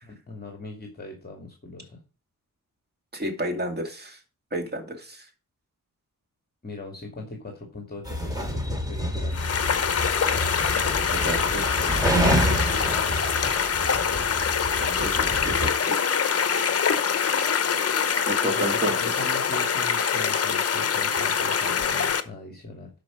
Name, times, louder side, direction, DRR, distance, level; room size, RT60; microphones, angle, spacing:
voice 1, 0.0-2.0 6.6-9.4 14.8-15.0 18.4-22.9, left 2 dB, 30° left, 2 dB, 2.3 m, -40 dB
voice 2, 3.1-4.2 4.5-5.2 11.1-11.6 15.0-15.7 18.3-19.0, equal, 30° right, 4 dB, 2.4 m, -30 dB
sound 1, 8.1-15.7, equal, 10° right, 2.6 m, -28 dB
sound 2, 9.3-22.2, left 7 dB, 50° left, 0.9 m, -24 dB
12.0 x 5.2 x 5.0 m, 0.35 s
wide cardioid pair, 110°, 32 cm